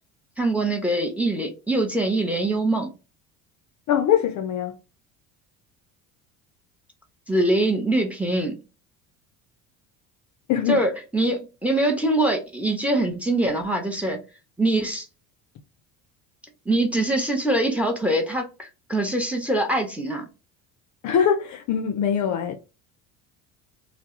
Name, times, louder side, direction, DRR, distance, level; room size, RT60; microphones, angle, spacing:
voice 1, 0.4-2.9 7.3-8.5 10.7-14.2 14.6-15.1 16.7-20.2, right 1 dB, 5° right, 0.6 m, -23 dB
voice 2, 3.9-4.7 10.5-10.8 21.0-22.6, left 8 dB, 45° left, 0.4 m, -22 dB
2.2 x 2.0 x 2.9 m
hypercardioid pair, 70°, 43 cm